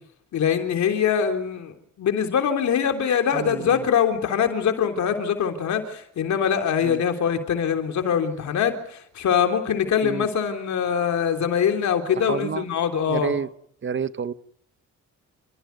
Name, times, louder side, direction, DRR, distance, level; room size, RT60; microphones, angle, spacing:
voice 1, 0.3-13.3, left 8 dB, 65° left, 3.4 m, -23 dB
voice 2, 3.3-3.9 6.8-7.0 10.0-10.3 12.2-12.7 13.1-13.5 13.8-14.3, right 6 dB, 40° right, 1.1 m, -29 dB
28.5 x 16.0 x 9.4 m
cardioid pair, 90°, 30 cm